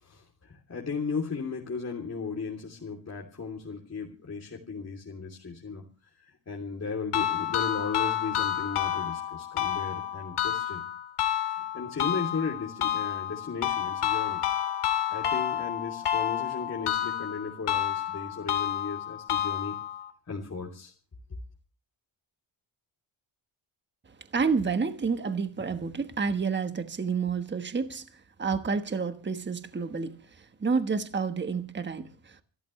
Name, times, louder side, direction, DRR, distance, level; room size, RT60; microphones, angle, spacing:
voice 1, 0.0-5.8 6.5-10.8 11.7-14.4 15.1-19.7 20.3-20.9, left 5 dB, 30° left, 3.1 m, -35 dB
sound 1, 7.1-20.1, left 10 dB, 85° left, 2.9 m, -30 dB
voice 2, 24.3-28.0 28.4-32.4, right 5 dB, 20° right, 1.3 m, -29 dB
27.5 x 13.5 x 3.2 m
wide cardioid pair, 140°, 49 cm